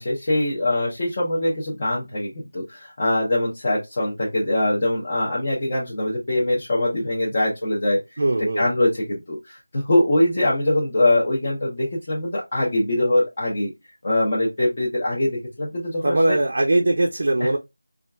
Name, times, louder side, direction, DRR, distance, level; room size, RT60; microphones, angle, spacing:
voice 1, 0.0-8.0 8.4-13.7 14.0-16.4 17.4-17.6, left 1 dB, 30° left, 0.8 m, -23 dB
voice 2, 8.2-8.7 16.0-17.6, right 2 dB, 45° right, 0.5 m, -20 dB
4.3 x 2.4 x 2.3 m
figure-of-eight pair, 175°, 0 cm